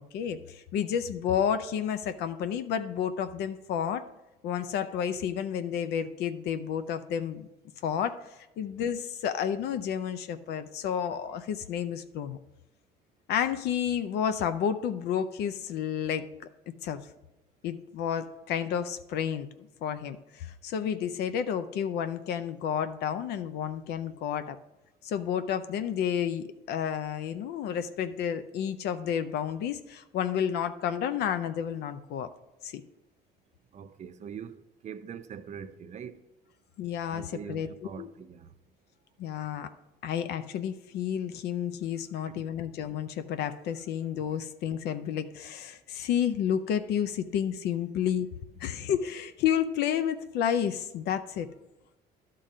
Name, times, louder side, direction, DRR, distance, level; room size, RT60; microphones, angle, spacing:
voice 1, 0.0-4.0 4.4-7.5 7.8-12.4 13.3-16.3 16.7-17.0 17.6-24.6 25.0-32.3 32.6-32.8 36.8-37.7 38.0-38.1 39.2-39.7 40.0-48.3 48.6-51.5, left 8 dB, 75° left, 0.5 m, -31 dB
voice 2, 33.7-34.6 34.8-36.2 37.1-38.5 42.3-42.4 48.6-48.7, right 7 dB, 45° right, 0.6 m, -42 dB
11.5 x 3.8 x 5.4 m
cardioid pair, 110°, 17 cm